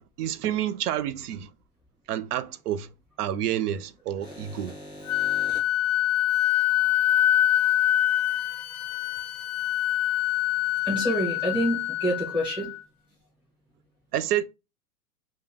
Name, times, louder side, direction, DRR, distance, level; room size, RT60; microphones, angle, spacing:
voice 1, 0.2-1.5 2.1-2.9 3.2-4.7 14.1-14.4, right 11 dB, 85° right, 0.5 m, -28 dB
voice 2, 4.2-5.6 10.9-12.7, equal, 5° left, 0.4 m, -29 dB
Wind instrument woodwind instrument, 5.1-12.8, left 12 dB, 85° left, 0.5 m, -25 dB
2.1 x 2.1 x 3.4 m
supercardioid pair, 170°, 45 cm